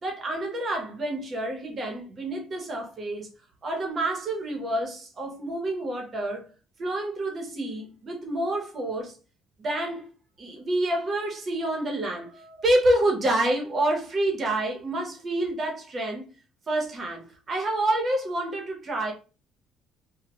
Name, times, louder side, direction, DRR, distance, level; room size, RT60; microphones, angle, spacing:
voice 1, 0.0-3.3 3.6-6.5 6.8-9.2 9.6-10.1 10.4-16.2 16.7-19.1, right 1 dB, 35° right, 0.9 m, -28 dB
2.2 x 2.1 x 2.9 m
cardioid pair, 140°, 0 cm